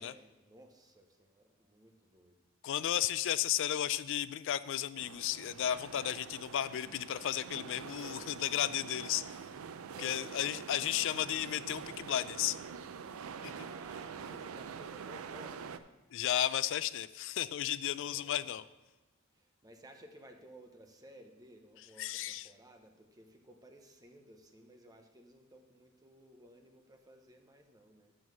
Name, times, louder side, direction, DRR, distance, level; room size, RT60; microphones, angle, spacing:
voice 1, 0.0-2.4 9.9-10.5 13.5-15.7 18.0-18.6 19.3-28.1, right 1 dB, 20° right, 4 dB, 0.8 m, -57 dB
voice 2, 2.6-9.2 10.0-12.6 13.4-13.5 16.1-18.6 22.0-22.5, left 11 dB, 60° left, 15 dB, 0.4 m, -34 dB
sound 1, 5.0-15.8, right 6 dB, 85° right, 0.5 m, -46 dB
7.2 x 6.3 x 6.1 m, 1.1 s
head